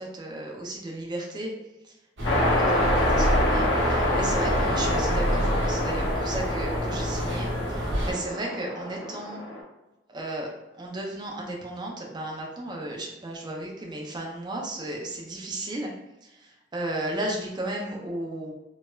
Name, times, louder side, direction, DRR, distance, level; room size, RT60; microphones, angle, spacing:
voice 1, 0.0-1.5 1.9-2.0 2.3-9.4 10.1-15.9 16.2-18.5, right 1 dB, 25° right, -1 dB, 0.4 m, -34 dB
sound 1, 2.2-9.6, left 1 dB, 80° left, 0.6 m, -27 dB
sound 2, 2.2-8.1, equal, 75° right, 0.7 m, -27 dB
3.0 x 2.0 x 2.2 m, 1.0 s
head